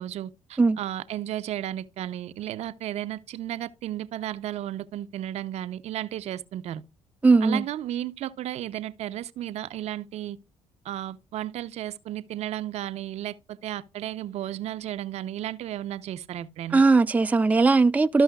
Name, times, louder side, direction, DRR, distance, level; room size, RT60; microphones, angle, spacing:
voice 1, 0.0-6.8 7.4-10.4 10.8-16.8, right 12 dB, 70° right, 0.7 m, -34 dB
voice 2, 7.2-7.6 16.7-18.2, right 3 dB, 15° right, 0.4 m, -19 dB
13.5 x 5.5 x 2.3 m
cardioid pair, 80°, 12 cm